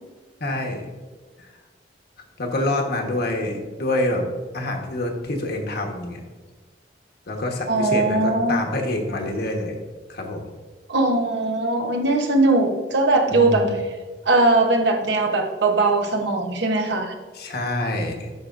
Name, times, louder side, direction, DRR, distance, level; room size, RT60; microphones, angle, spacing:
voice 1, 0.4-0.8 1.4-1.5 2.4-4.3 4.5-6.3 7.3-9.8 10.1-10.4 13.3-13.8 17.3-18.3, left 1 dB, 60° left, 2 dB, 1.2 m, -26 dB
voice 2, 7.7-8.6 10.9-13.7 14.2-17.2, right 2 dB, 65° right, 3 dB, 1.0 m, -20 dB
12.5 x 4.9 x 2.5 m, 1.4 s
head